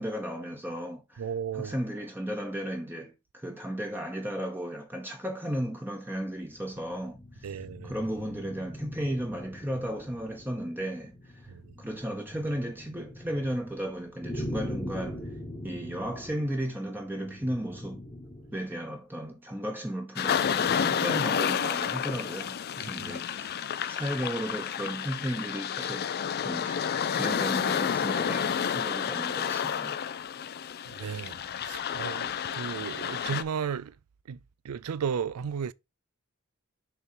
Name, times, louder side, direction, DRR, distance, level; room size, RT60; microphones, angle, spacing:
voice 1, 0.0-1.2 1.5-7.5 7.8-11.5 11.8-15.3 15.6-18.1 18.5-26.1 26.4-26.8 27.1-30.0, equal, 10° right, 1.0 m, -35 dB
voice 2, 1.2-1.7 7.4-7.9 11.5-11.7 22.8-22.9 30.8-34.0 34.3-35.7, right 7 dB, 80° right, 0.4 m, -34 dB
sound 1, 6.3-18.8, left 1 dB, 20° left, 1.2 m, -42 dB
sound 2, 20.2-33.4, left 8 dB, 45° left, 0.4 m, -30 dB
6.8 x 3.6 x 4.2 m
head